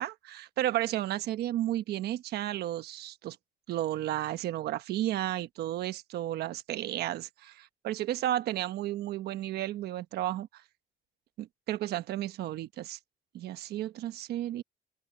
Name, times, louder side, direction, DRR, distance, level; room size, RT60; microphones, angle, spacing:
voice 1, 0.0-3.4 3.7-10.6 11.4-13.0 13.3-14.6, right 13 dB, 70° right, 1.2 m, -33 dB
open air
cardioid pair, 110°, 17 cm